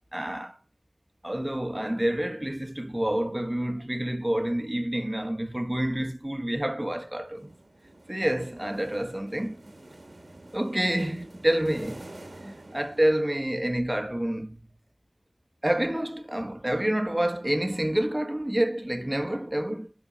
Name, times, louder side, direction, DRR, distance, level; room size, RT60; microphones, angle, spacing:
voice 1, 0.1-0.6 1.2-7.6 8.1-9.6 10.5-12.1 12.4-14.7 15.6-19.9, right 1 dB, 20° right, 1.3 m, -28 dB
sound 1, 7.2-13.8, right 1 dB, 60° right, 1.9 m, -48 dB
11.0 x 4.4 x 4.1 m
wide cardioid pair, 40°, 0 cm